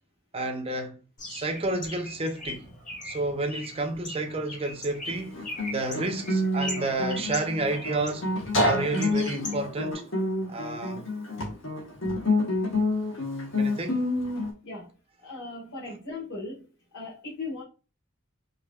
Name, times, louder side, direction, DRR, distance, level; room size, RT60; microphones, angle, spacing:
voice 1, 0.3-1.0 1.3-2.7 3.0-5.4 5.7-8.3 8.6-10.0 10.5-11.0 13.6-14.0, right 2 dB, 25° right, 0.6 m, -30 dB
Bird, 1.2-9.9, left 1 dB, 35° left, 1.6 m, -40 dB
Guitar, 5.1-14.5, left 1 dB, 60° left, 1.2 m, -28 dB
voice 2, 14.6-15.0 15.2-17.6, left 3 dB, 80° left, 1.4 m, -38 dB
4.6 x 2.8 x 2.3 m
head